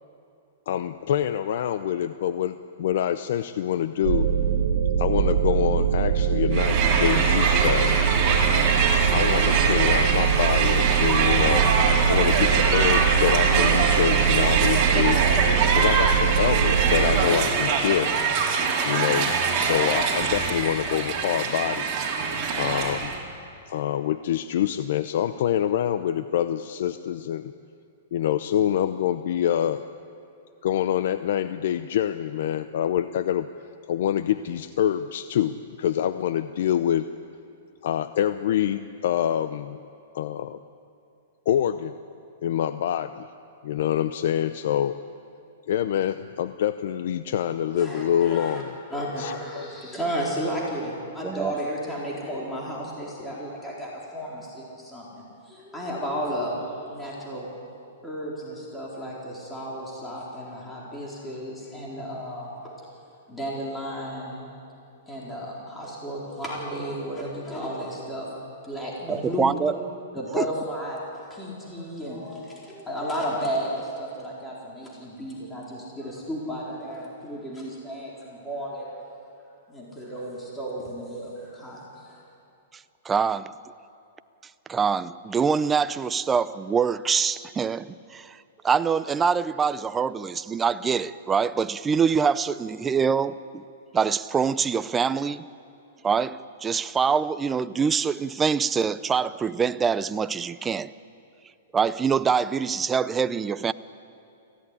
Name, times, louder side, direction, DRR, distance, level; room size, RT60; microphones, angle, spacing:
voice 1, 0.7-4.3 5.0-8.2 9.1-11.7 12.1-15.2 15.7-18.1 18.8-21.9 22.5-23.1 23.7-27.5 28.1-29.8 30.6-33.5 33.9-37.1 37.8-39.8 40.1-40.6 41.5-42.0 42.4-43.3 43.6-45.0 45.7-48.8 49.2-49.7, left 10 dB, 65° left, 0.7 m, -26 dB
sound 1, 4.0-17.3, right 7 dB, 70° right, 2.7 m, -23 dB
Crowd, 6.5-23.2, right 5 dB, 30° right, 4.3 m, -23 dB
voice 2, 47.7-48.6 48.9-55.0 55.4-57.5 58.0-62.7 63.3-64.4 65.1-69.4 70.1-78.9 79.7-82.2, equal, 10° left, 4.2 m, -33 dB
voice 3, 51.2-51.6 69.1-69.7 70.4-70.5 83.0-83.5 84.7-88.4 88.6-93.6 93.9-95.4 96.0-100.9 101.7-103.7, right 6 dB, 15° right, 0.6 m, -24 dB
23.5 x 16.0 x 9.9 m
hypercardioid pair, 145°, 0 cm